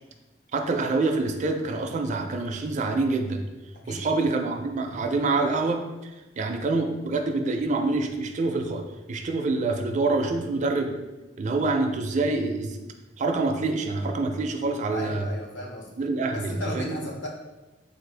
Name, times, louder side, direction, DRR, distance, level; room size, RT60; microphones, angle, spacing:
voice 1, 0.5-3.4 3.9-6.1 6.4-8.8 9.1-10.9 11.4-12.8 13.2-15.3 16.0-17.0, right 3 dB, 40° right, 4 dB, 0.4 m, -26 dB
voice 2, 14.9-15.9 16.3-17.3, left 1 dB, 75° left, -2 dB, 0.9 m, -35 dB
4.1 x 2.5 x 3.3 m, 1.1 s
head